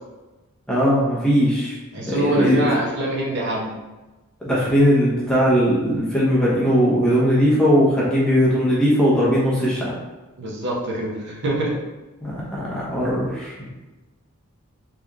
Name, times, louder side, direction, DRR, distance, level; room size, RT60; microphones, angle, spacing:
voice 1, 0.7-1.8 2.1-2.7 4.4-9.9 12.2-13.6, equal, 5° left, -8 dB, 1.0 m, -19 dB
voice 2, 1.9-3.7 10.4-11.8, right 1 dB, 50° right, -2 dB, 0.6 m, -24 dB
4.0 x 3.4 x 2.4 m, 1.1 s
head